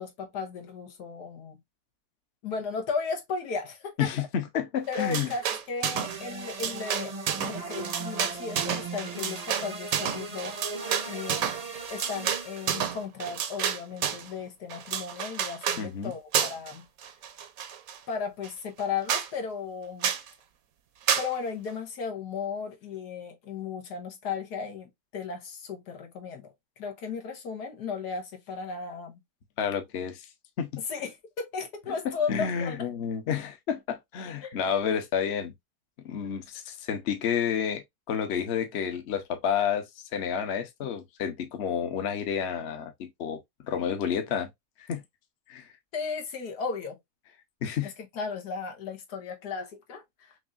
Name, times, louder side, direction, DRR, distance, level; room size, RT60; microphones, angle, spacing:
voice 1, 0.0-1.6 2.4-4.1 4.9-7.1 7.5-10.5 11.1-11.4 11.9-16.8 18.1-20.1 21.2-26.5 26.8-29.1 30.9-31.1 31.4-32.8 34.4-34.6 45.9-47.0 47.8-47.9 48.2-50.0, left 5 dB, 85° left, 1.7 m, -35 dB
voice 2, 4.0-5.3 15.8-16.1 29.6-30.3 30.6-30.7 32.0-35.5 36.0-44.5 44.9-45.0 45.5-45.7 47.6-47.9, left 8 dB, 50° left, 1.0 m, -30 dB
sound 1, 4.9-6.2 6.4-14.3 14.7-15.8 16.3-16.7 17.0-18.0 18.4-18.5 18.8-18.9 19.1-19.3 20.0-20.3 21.1-21.3, right 8 dB, 65° right, 1.1 m, -30 dB
sound 2, 5.9-13.0, right 4 dB, 35° right, 0.7 m, -38 dB
6.0 x 2.7 x 2.4 m
omnidirectional pair, 1.7 m